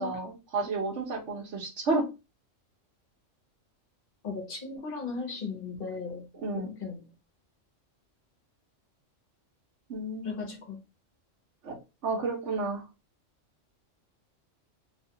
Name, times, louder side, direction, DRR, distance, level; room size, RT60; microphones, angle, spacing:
voice 1, 0.0-2.1 6.4-6.7 9.9-10.6 11.6-11.8 12.0-12.8, right 3 dB, 65° right, 1.2 m, -31 dB
voice 2, 4.2-6.3 6.6-7.0 10.2-10.8, left 4 dB, 50° left, 1.0 m, -36 dB
2.9 x 2.3 x 2.7 m
omnidirectional pair, 1.3 m